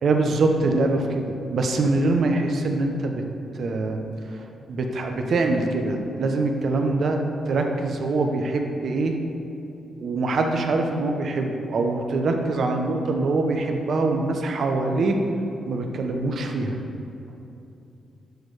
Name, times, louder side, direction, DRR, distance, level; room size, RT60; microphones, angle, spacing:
voice 1, 0.0-3.2 3.5-9.2 10.0-15.2 15.7-16.8, right 3 dB, 55° right, 3 dB, 0.9 m, -24 dB
11.5 x 4.5 x 4.8 m, 2.8 s
cardioid pair, 130°, 0 cm